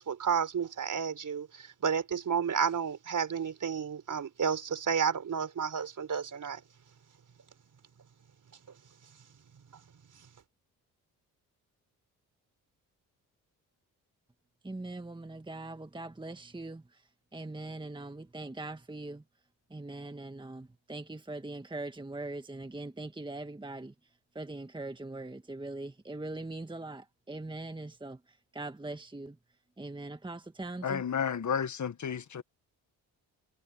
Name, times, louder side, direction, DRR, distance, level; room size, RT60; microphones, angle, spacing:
voice 1, 0.0-6.6, right 7 dB, 55° right, 4.5 m, -31 dB
voice 2, 14.6-16.8 17.3-19.2 19.7-23.9 24.3-28.2 28.5-29.4 29.8-31.0, right 2 dB, 10° right, 1.6 m, -41 dB
voice 3, 30.8-32.4, left 7 dB, 50° left, 1.5 m, -32 dB
supercardioid pair, 65°, 38 cm